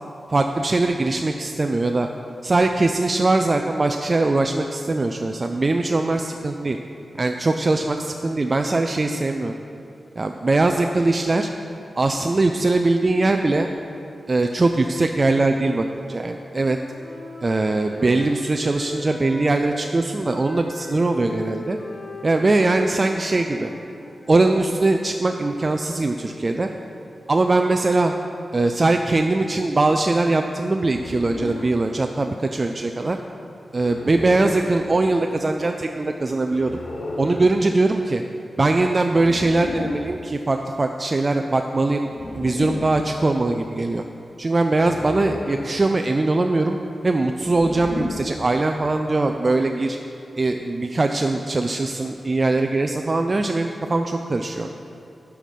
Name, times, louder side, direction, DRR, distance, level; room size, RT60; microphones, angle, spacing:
voice 1, 0.3-2.1 2.4-6.8 7.2-9.5 10.2-11.5 12.0-13.7 14.3-16.8 17.4-21.8 22.2-23.7 24.3-26.7 27.3-28.1 28.5-33.2 33.7-36.8 37.2-38.2 38.6-42.1 42.3-44.0 44.4-46.8 47.0-50.0 50.4-54.7, right 2 dB, 30° right, 4 dB, 0.3 m, -21 dB
Wind instrument woodwind instrument, 16.1-19.9 20.2-24.7, left 2 dB, 80° left, 1.5 m, -39 dB
sound 1, 30.8-31.8 33.7-34.7 36.5-37.5 39.1-40.1 42.1-43.1 44.7-45.8 47.4-48.4, left 2 dB, 55° left, 1.0 m, -33 dB
11.0 x 5.8 x 5.3 m, 2.6 s
wide cardioid pair, 145°, 0 cm